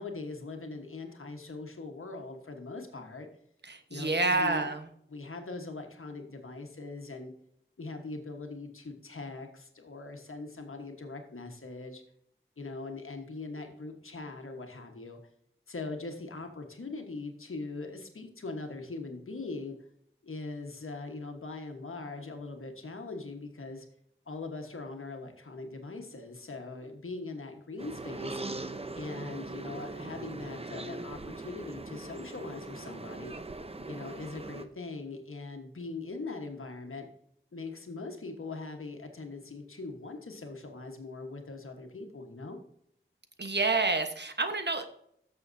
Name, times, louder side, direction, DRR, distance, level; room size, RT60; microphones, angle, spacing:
voice 1, 0.0-3.3 3.9-4.7 5.1-7.3 7.8-12.0 12.6-15.2 15.7-19.8 20.2-23.9 24.3-28.4 28.9-33.3 33.9-37.1 37.5-42.6, left 3 dB, 80° left, 4 dB, 1.3 m, -41 dB
voice 2, 3.6-4.9 43.4-44.9, right 3 dB, 55° right, 7 dB, 1.2 m, -28 dB
sound 1, 27.8-34.7, right 2 dB, 30° right, 0.7 m, -40 dB
13.5 x 6.4 x 2.7 m, 0.70 s
wide cardioid pair, 45°, 21 cm